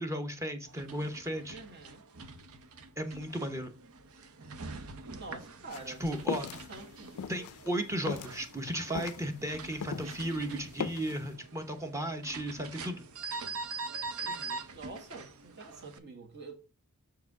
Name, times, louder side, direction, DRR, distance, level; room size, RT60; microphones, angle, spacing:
voice 1, 0.0-1.6 3.0-3.7 5.9-6.6 7.3-13.1, right 1 dB, 15° right, 0.8 m, -35 dB
sound 1, 0.7-16.0, right 4 dB, 70° right, 0.8 m, -44 dB
voice 2, 1.5-2.1 5.1-7.1 14.2-16.5, right 3 dB, 50° right, 1.6 m, -47 dB
sound 2, 5.7-10.3 10.6-11.2, left 6 dB, 80° left, 0.4 m, -38 dB
6.6 x 4.7 x 4.7 m
head